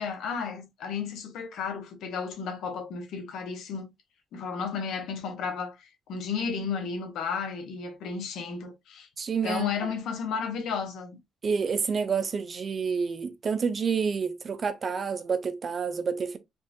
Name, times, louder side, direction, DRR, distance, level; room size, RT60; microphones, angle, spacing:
voice 1, 0.0-3.9 4.3-9.1 9.4-11.2, left 6 dB, 75° left, 1.0 m, -33 dB
voice 2, 9.2-9.7 11.4-16.4, right 5 dB, 45° right, 0.5 m, -28 dB
3.8 x 2.5 x 2.2 m
cardioid pair, 80°, 0 cm